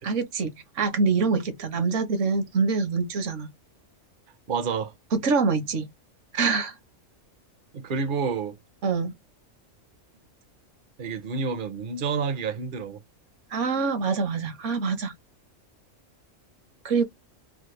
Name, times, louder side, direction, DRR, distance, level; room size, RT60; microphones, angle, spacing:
voice 1, 0.0-3.5 5.1-5.9 6.3-6.7 8.8-9.1 13.5-15.1 16.8-17.0, right 4 dB, 70° right, 1.2 m, -25 dB
voice 2, 4.5-4.9 7.7-8.6 11.0-13.0, right 5 dB, 50° right, 0.6 m, -29 dB
3.3 x 2.0 x 3.1 m
omnidirectional pair, 1.3 m